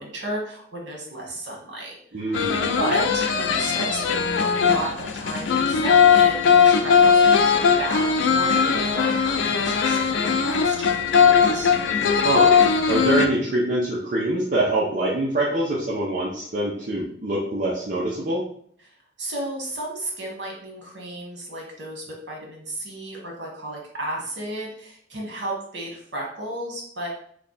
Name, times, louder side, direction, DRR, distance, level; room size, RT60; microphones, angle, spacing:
voice 1, 0.0-2.4 2.8-11.7 18.8-27.1, right 1 dB, 65° right, -2 dB, 1.3 m, -33 dB
voice 2, 2.1-2.8 12.0-12.6 12.9-18.4, right 1 dB, 45° right, -5 dB, 0.6 m, -24 dB
sound 1, 2.3-13.3, left 6 dB, 80° left, 0.4 m, -19 dB
3.3 x 2.3 x 3.9 m, 0.62 s
head